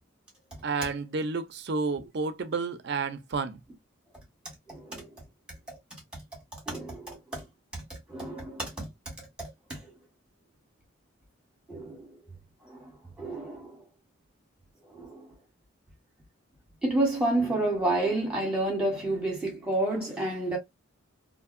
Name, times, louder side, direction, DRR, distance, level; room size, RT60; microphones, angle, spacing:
voice 1, 0.6-3.6, right 4 dB, 55° right, 0.4 m, -31 dB
voice 2, 4.7-5.1 6.7-7.4 8.1-8.9 9.7-9.8 11.7-12.1 12.7-12.9 13.2-13.7 14.9-15.3 16.8-20.6, right 2 dB, 5° right, 1.5 m, -29 dB
2.7 x 2.6 x 2.4 m
head